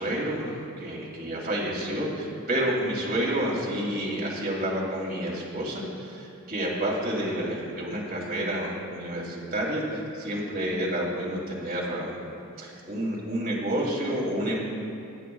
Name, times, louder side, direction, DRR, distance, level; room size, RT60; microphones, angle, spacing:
voice 1, 0.0-12.2 12.6-14.6, right 1 dB, 45° right, -5 dB, 2.8 m, -29 dB
21.0 x 9.4 x 2.3 m, 2.8 s
head